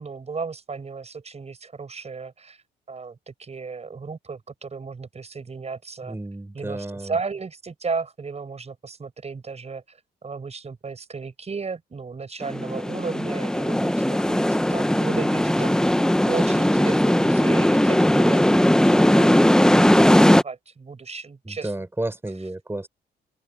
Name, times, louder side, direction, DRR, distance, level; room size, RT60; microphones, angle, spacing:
voice 1, 0.0-2.6 2.9-6.2 6.5-16.0 16.3-19.9 20.2-21.7, right 4 dB, 35° right, 5.6 m, -34 dB
voice 2, 6.0-7.2 21.4-22.9, right 2 dB, 10° right, 4.1 m, -32 dB
sound 1, 12.4-20.4, left 1 dB, 5° left, 0.8 m, -18 dB
open air
cardioid pair, 90°, 20 cm